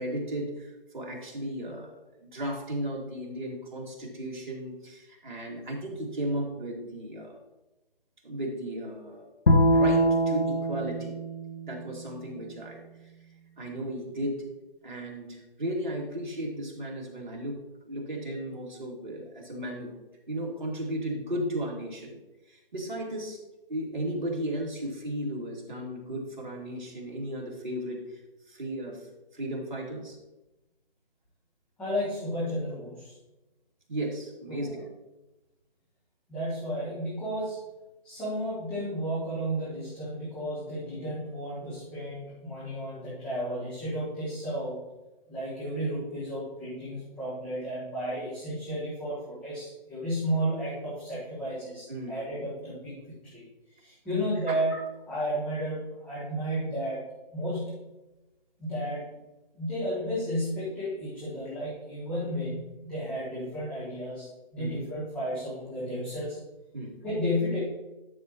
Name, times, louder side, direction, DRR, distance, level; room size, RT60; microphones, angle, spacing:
voice 1, 0.0-7.4 8.2-9.3 9.7-11.2 11.6-13.1 13.6-14.4 14.8-17.6 17.9-19.9 20.3-22.2 22.5-23.4 23.7-28.2 28.5-30.2 33.9-34.8 51.9-52.2 54.5-54.6 64.6-64.7 66.7-66.9, right 1 dB, 55° right, -2 dB, 2.4 m, -35 dB
Bowed string instrument, 9.5-12.7, equal, 65° left, 1.1 m, -25 dB
voice 2, 31.8-33.1 34.5-34.8 36.3-37.6 38.0-44.8 45.3-53.4 53.7-54.7 55.1-57.0 57.3-57.8 58.6-59.0 59.5-64.3 64.5-66.4 67.0-67.6, equal, 5° left, -12 dB, 1.4 m, -33 dB
11.5 x 6.6 x 3.0 m, 1.0 s
figure-of-eight pair, 155°, 29 cm